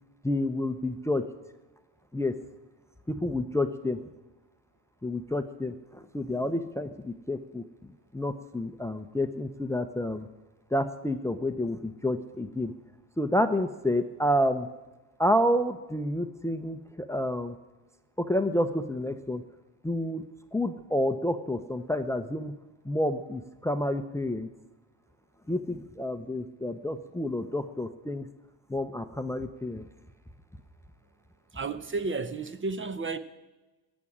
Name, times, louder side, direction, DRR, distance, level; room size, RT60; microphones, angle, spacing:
voice 1, 0.2-1.2 2.1-2.3 3.1-4.0 5.0-10.3 10.7-12.7 13.2-14.7 15.2-17.6 18.2-19.4 19.8-20.2 20.5-22.5 22.8-24.5 25.5-28.3 28.7-29.9, left 1 dB, 5° left, 0.7 m, -29 dB
voice 2, 31.5-33.2, right 4 dB, 25° right, 0.8 m, -32 dB
15.0 x 6.3 x 9.8 m
supercardioid pair, 85°, 45 cm